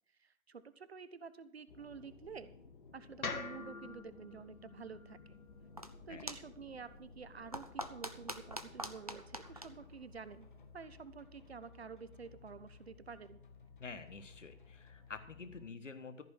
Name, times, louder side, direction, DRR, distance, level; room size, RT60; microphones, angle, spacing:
voice 1, 0.2-2.5 2.9-5.4 6.1-13.4, right 5 dB, 50° right, 14 dB, 0.8 m, -50 dB
sound 1, 1.7-15.7, left 5 dB, 35° left, 1.0 m, -58 dB
sound 2, 3.2-7.4, left 4 dB, 80° left, 1.3 m, -47 dB
sound 3, 5.4-10.8, equal, 30° right, 0.5 m, -47 dB
voice 2, 13.8-16.2, left 4 dB, 60° left, 9 dB, 1.5 m, -48 dB
14.0 x 5.4 x 8.0 m, 0.68 s
figure-of-eight pair, 145°, 42 cm